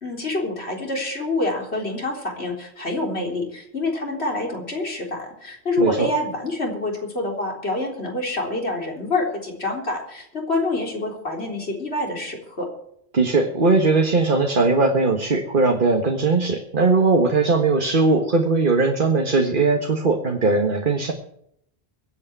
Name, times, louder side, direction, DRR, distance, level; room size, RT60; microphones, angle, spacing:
voice 1, 0.0-12.7, left 2 dB, 85° left, 0 dB, 4.2 m, -26 dB
voice 2, 13.1-21.1, right 3 dB, 55° right, 3 dB, 1.7 m, -19 dB
24.0 x 8.7 x 4.7 m, 0.72 s
omnidirectional pair, 1.1 m